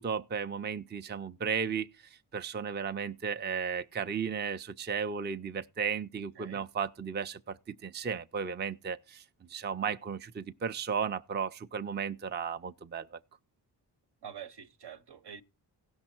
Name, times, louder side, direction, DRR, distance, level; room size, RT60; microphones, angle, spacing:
voice 1, 0.0-1.9 2.3-9.2 9.5-13.2, right 6 dB, 25° right, 0.5 m, -34 dB
voice 2, 6.1-6.7 14.2-15.4, right 8 dB, 70° right, 1.0 m, -47 dB
16.5 x 6.3 x 4.4 m
wide cardioid pair, 100°, 42 cm